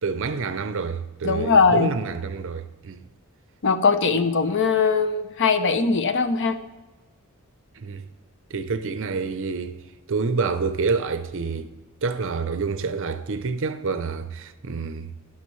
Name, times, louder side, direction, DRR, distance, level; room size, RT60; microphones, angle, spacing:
voice 1, 0.0-3.0 7.8-8.0 8.5-9.8 10.1-11.7 12.0-15.1, right 4 dB, 60° right, 0.6 m, -27 dB
voice 2, 1.2-1.9 3.6-6.6, left 4 dB, 55° left, 0.7 m, -20 dB
12.0 x 10.5 x 3.2 m
head